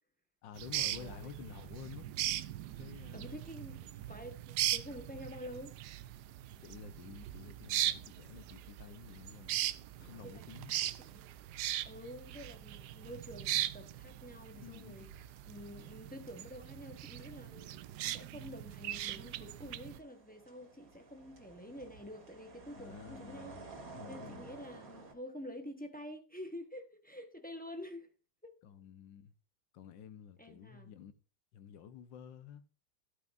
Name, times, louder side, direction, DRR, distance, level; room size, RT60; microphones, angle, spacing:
voice 1, 0.4-2.1 2.8-3.4 6.6-9.6 10.0-10.8 14.5-15.3 22.8-23.6 23.9-24.6 28.6-29.3 29.7-31.1 31.5-32.6, left 8 dB, 90° left, 1.6 m, -51 dB
sound 1, 0.6-20.0, right 13 dB, 70° right, 1.1 m, -39 dB
voice 2, 1.0-1.5 3.1-5.7 10.0-10.5 11.0-11.2 11.8-15.1 15.5-17.8 18.1-23.6 24.1-28.1 28.4-28.5 30.4-30.9, left 1 dB, 5° left, 0.9 m, -48 dB
sound 2, 15.1-16.0 16.3-25.1, right 3 dB, 50° right, 2.0 m, -54 dB
13.5 x 8.9 x 2.6 m
omnidirectional pair, 2.0 m